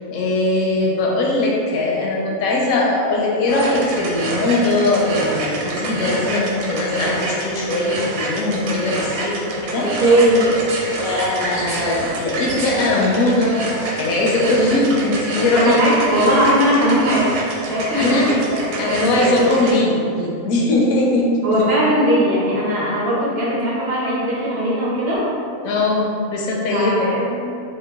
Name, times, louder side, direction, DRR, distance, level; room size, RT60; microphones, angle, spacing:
voice 1, 0.1-9.9 11.0-13.7 14.0-15.8 17.9-18.3 18.8-21.8 25.6-27.1, left 2 dB, 80° left, -2 dB, 1.0 m, -20 dB
sound 1, 3.5-19.7, right 2 dB, 75° right, 1.0 m, -27 dB
voice 2, 9.7-10.5 15.5-17.3 17.7-19.3 21.4-25.2 26.7-27.4, right 1 dB, 55° right, -6 dB, 0.8 m, -19 dB
2.9 x 2.2 x 3.4 m, 2.5 s
omnidirectional pair, 1.5 m